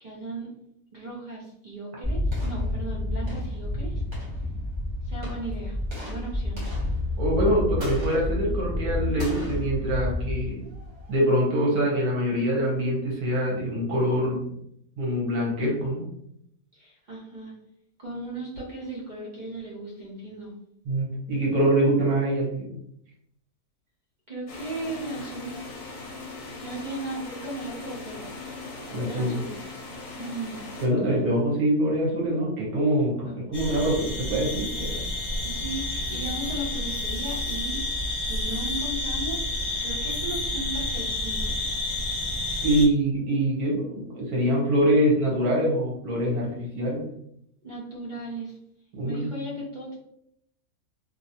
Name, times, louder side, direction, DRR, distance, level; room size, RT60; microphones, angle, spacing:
voice 1, 0.0-0.5 0.9-4.0 5.0-5.8 6.1-6.6 16.7-17.5 18.0-20.5 24.3-25.5 26.6-29.6 30.2-30.6 31.1-31.2 33.2-33.4 35.4-37.8 38.2-41.5 47.6-48.6 49.0-49.9, right 2 dB, 50° right, -4 dB, 0.6 m, -36 dB
sound 1, 2.0-11.2, left 1 dB, 20° right, 1.0 m, -29 dB
voice 2, 7.2-10.6 11.1-14.5 15.0-16.1 20.8-22.8 28.9-29.4 30.8-35.0 42.6-47.1 48.9-49.3, right 1 dB, 80° right, -3 dB, 1.5 m, -24 dB
sound 2, 24.5-30.9, left 3 dB, 55° left, 0.9 m, -40 dB
sound 3, 33.5-42.8, left 2 dB, 30° left, 0.5 m, -30 dB
2.9 x 2.8 x 2.7 m, 0.74 s
omnidirectional pair, 1.6 m